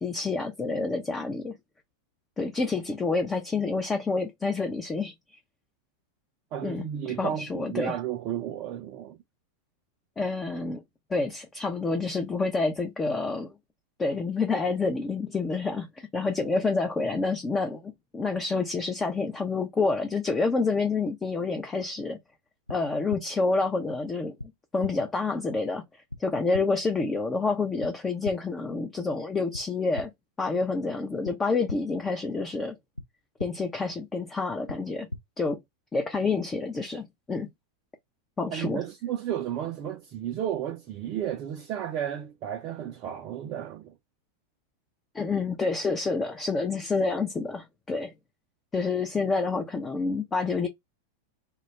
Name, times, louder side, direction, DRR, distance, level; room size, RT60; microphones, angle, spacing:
voice 1, 0.0-1.6 2.4-5.1 6.6-8.0 10.2-10.8 11.1-13.5 14.0-22.2 22.7-24.4 24.7-25.8 26.2-30.1 30.4-32.8 33.4-35.1 35.4-35.6 35.9-37.5 38.4-38.8 45.1-48.1 48.7-50.7, left 3 dB, 15° left, 0.5 m, -28 dB
voice 2, 6.5-9.2 38.5-43.9, right 10 dB, 40° right, 0.4 m, -33 dB
sound 1, 22.7-22.8 23.1-23.2 24.4-24.5 24.8-24.9 26.1-26.2 26.5-26.6 27.8-27.9 28.2-28.3 29.5-29.6 30.0-30.1 31.3-31.4 31.7-31.8 33.0-33.1 33.4-33.5 34.7-34.8 35.1-35.2, left 2 dB, 85° left, 0.4 m, -35 dB
2.2 x 2.0 x 3.2 m
figure-of-eight pair, 90°, 0 cm